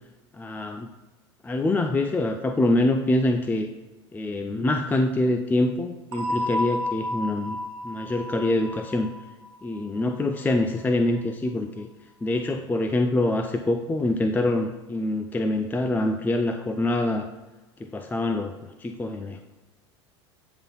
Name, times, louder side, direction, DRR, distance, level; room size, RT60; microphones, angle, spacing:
voice 1, 0.3-0.9 1.4-3.7 4.1-7.6 7.8-9.1 9.6-11.9 12.2-17.3 17.8-19.4, left 2 dB, 10° left, 7 dB, 0.4 m, -25 dB
sound 1, 6.1-10.7, left 1 dB, 75° right, 1.1 m, -32 dB
8.9 x 3.8 x 4.0 m, 1.1 s
hypercardioid pair, 85°, 14 cm